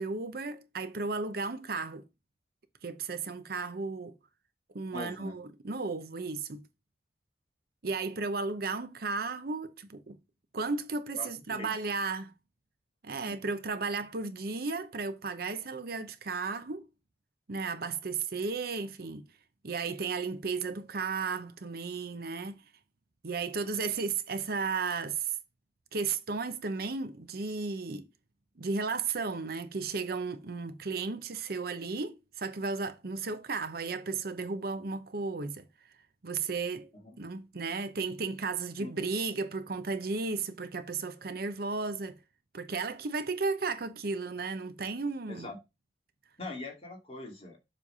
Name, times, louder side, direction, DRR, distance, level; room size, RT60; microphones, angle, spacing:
voice 1, 0.0-2.0 2.8-4.2 4.7-6.6 7.8-10.2 10.5-12.3 13.0-16.9 17.5-19.3 19.6-22.6 23.2-25.3 25.9-28.1 28.6-35.7 36.2-36.9 37.2-42.2 42.5-45.5, right 4 dB, 55° right, 0.7 m, -34 dB
voice 2, 4.9-5.4 11.2-11.3 11.6-11.7 13.3-13.4 37.0-37.1 38.8-38.9 45.3-45.6 46.4-47.6, left 2 dB, 35° left, 2.1 m, -41 dB
7.4 x 3.3 x 5.4 m
head